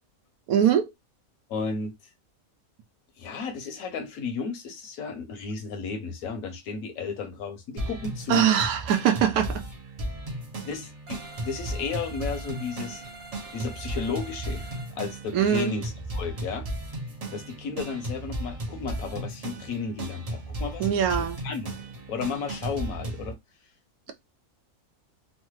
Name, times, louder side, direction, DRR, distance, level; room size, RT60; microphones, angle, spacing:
voice 1, 0.5-0.9 8.3-9.6 15.3-15.7 20.8-21.4, right 9 dB, 85° right, 1.0 m, -22 dB
voice 2, 1.5-1.9 3.2-8.5 10.6-13.0 13.5-16.7 17.3-21.0 21.4-21.7 22.1-23.4, left 5 dB, 75° left, 1.1 m, -33 dB
sound 1, 7.8-23.3, right 1 dB, 45° right, 0.5 m, -35 dB
sound 2, 11.1-14.9, right 2 dB, 65° right, 1.3 m, -45 dB
3.2 x 2.1 x 3.0 m
omnidirectional pair, 1.5 m